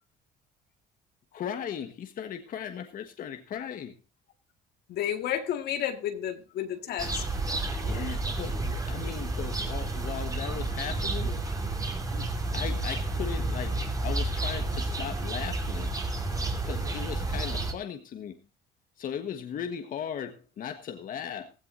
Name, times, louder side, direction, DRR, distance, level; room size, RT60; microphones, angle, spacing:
voice 1, 1.3-4.0 6.8-7.1 7.7-11.4 12.1-12.3 12.5-15.9 16.6-18.4 19.0-21.5, left 8 dB, 55° left, 7 dB, 1.5 m, -37 dB
voice 2, 4.9-7.3, left 10 dB, 75° left, 7 dB, 1.9 m, -31 dB
sound 1, 7.0-17.7, right 2 dB, 20° right, 2.9 m, -31 dB
16.0 x 16.0 x 2.7 m, 0.28 s
cardioid pair, 110°, 17 cm